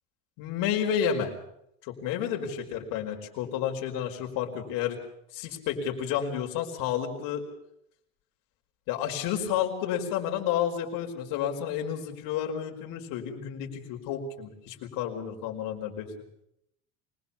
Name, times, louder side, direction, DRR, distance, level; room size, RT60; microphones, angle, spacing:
voice 1, 0.4-1.3 1.8-5.0 5.3-7.4 8.9-16.1, left 9 dB, 70° left, 3 dB, 5.2 m, -31 dB
24.5 x 21.0 x 7.2 m, 0.75 s
cardioid pair, 135°, 34 cm